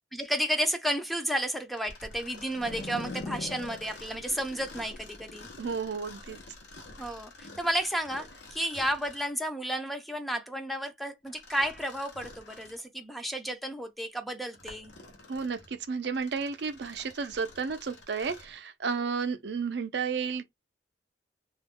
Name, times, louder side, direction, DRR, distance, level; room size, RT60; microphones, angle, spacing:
voice 1, 0.1-5.5 7.0-14.9, equal, ahead, 0.4 m, -32 dB
Mechanisms, 1.7-9.4 11.3-12.9 13.4-13.5 14.2-18.6, left 2 dB, 85° left, 0.9 m, -50 dB
sound 1, 2.5-7.2, left 3 dB, 65° left, 0.5 m, -42 dB
voice 2, 5.6-6.4 15.3-20.4, right 5 dB, 70° right, 0.5 m, -32 dB
2.3 x 2.1 x 3.5 m
head